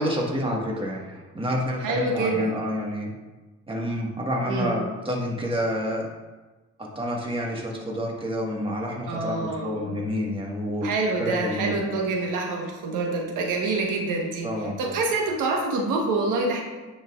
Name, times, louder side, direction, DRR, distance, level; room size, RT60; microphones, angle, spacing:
voice 1, 0.0-3.1 3.7-6.1 6.8-10.9 11.2-11.9 14.4-15.0, equal, 15° right, -2 dB, 1.5 m, -28 dB
voice 2, 1.8-2.5 4.5-4.7 9.1-9.9 10.8-16.6, right 3 dB, 90° right, 1 dB, 1.2 m, -26 dB
9.2 x 5.8 x 2.4 m, 1.2 s
cardioid pair, 90°, 30 cm